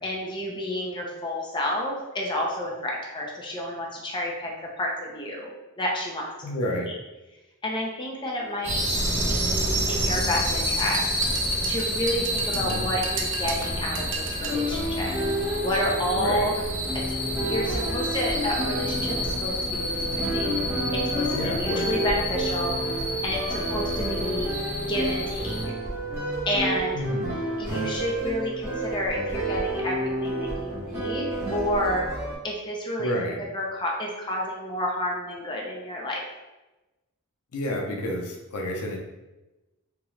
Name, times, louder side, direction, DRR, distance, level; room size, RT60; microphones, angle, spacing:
voice 1, 0.0-5.5 5.8-6.9 7.6-8.8 9.1-11.0 11.7-15.1 15.6-16.7 16.9-20.5 20.9-22.8 23.2-24.5 24.9-25.7 26.5-27.0 27.6-32.1 32.4-33.1 33.4-36.2, left 1 dB, 20° left, -2 dB, 0.5 m, -30 dB
voice 2, 6.4-6.9 12.5-12.9 16.2-16.5 21.3-21.9 26.9-27.4 33.0-33.4 37.5-39.0, left 1 dB, 85° left, 1 dB, 0.6 m, -30 dB
sound 1, 8.6-25.6, equal, 30° right, 1.5 m, -29 dB
sound 2, 10.8-14.7, right 3 dB, 55° right, 0.5 m, -35 dB
sound 3, 14.4-32.4, right 1 dB, 10° right, 1.1 m, -30 dB
3.6 x 2.9 x 3.1 m, 1.1 s
head